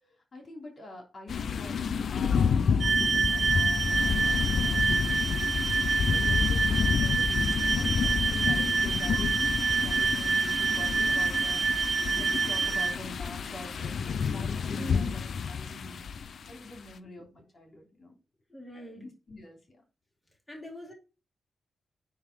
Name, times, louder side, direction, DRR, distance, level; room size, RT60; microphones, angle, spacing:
voice 1, 0.3-16.2 16.5-18.2 19.0-19.8, left 1 dB, 45° left, 3.1 m, -47 dB
sound 1, 1.3-16.6, left 6 dB, 65° left, 0.6 m, -29 dB
sound 2, 2.8-12.9, right 4 dB, 50° right, 1.0 m, -27 dB
voice 2, 14.8-15.2 18.5-19.0 20.5-20.9, left 1 dB, 5° left, 2.5 m, -42 dB
9.5 x 3.8 x 5.0 m
cardioid pair, 105°, 0 cm